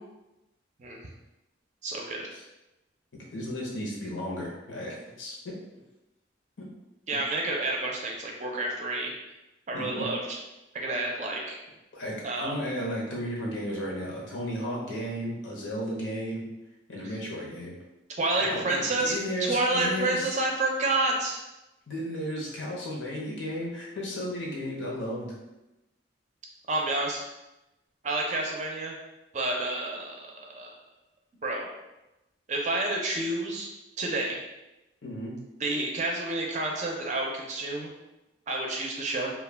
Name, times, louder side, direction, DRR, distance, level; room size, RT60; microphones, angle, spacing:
voice 1, 1.8-2.2 7.1-9.1 9.7-10.4 10.7-11.6 12.2-12.5 17.0-17.2 18.2-19.1 19.4-21.4 26.7-27.2 28.0-29.0 29.3-30.7 31.4-31.7 32.5-33.7 34.0-34.4 35.6-37.9 38.5-39.3, right 2 dB, 40° right, 0 dB, 0.4 m, -29 dB
voice 2, 3.3-5.5 6.6-6.7 9.7-10.0 11.9-16.4 16.9-17.7 18.3-20.3 21.9-25.4 35.0-35.4, equal, 85° left, -3 dB, 0.8 m, -34 dB
2.3 x 2.2 x 3.3 m, 0.97 s
head